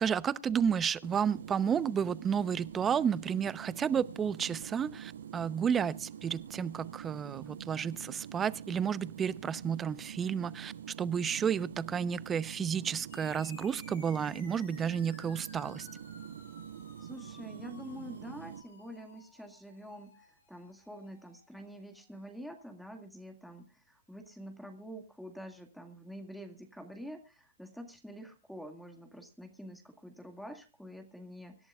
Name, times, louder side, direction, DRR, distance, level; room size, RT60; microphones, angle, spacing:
voice 1, 0.0-10.7 11.0-15.9, right 7 dB, 20° right, 18 dB, 0.8 m, -31 dB
sound 1, 1.0-18.6, right 9 dB, 75° right, 1.0 m, -46 dB
sound 2, 13.1-22.0, left 3 dB, 85° left, 7.9 m, -56 dB
voice 2, 17.0-31.7, equal, ahead, 5 dB, 2.0 m, -47 dB
25.0 x 11.5 x 2.4 m, 0.31 s
hypercardioid pair, 125°, 0 cm